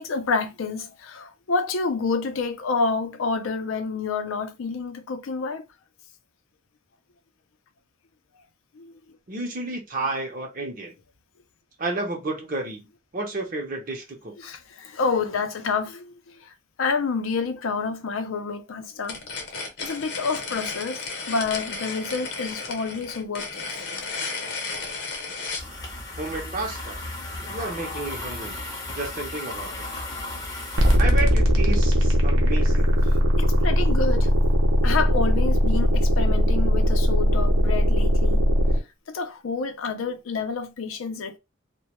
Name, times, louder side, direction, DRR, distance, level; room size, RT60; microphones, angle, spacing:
voice 1, 0.0-5.7 8.7-8.9 14.4-19.2 19.8-23.8 33.4-34.5 34.8-38.4 39.1-41.4, left 4 dB, 85° left, 0.5 m, -28 dB
voice 2, 9.3-11.0 11.8-12.9 13.1-14.3 26.2-27.0 27.5-28.6 28.9-29.9 31.0-32.9, right 2 dB, 40° right, 0.6 m, -31 dB
sound 1, 19.0-25.7, left 4 dB, 55° left, 0.8 m, -33 dB
sound 2, 25.6-31.0, left 2 dB, 20° left, 0.6 m, -35 dB
sound 3, 30.8-38.8, equal, 85° right, 0.6 m, -19 dB
2.2 x 2.1 x 2.8 m
head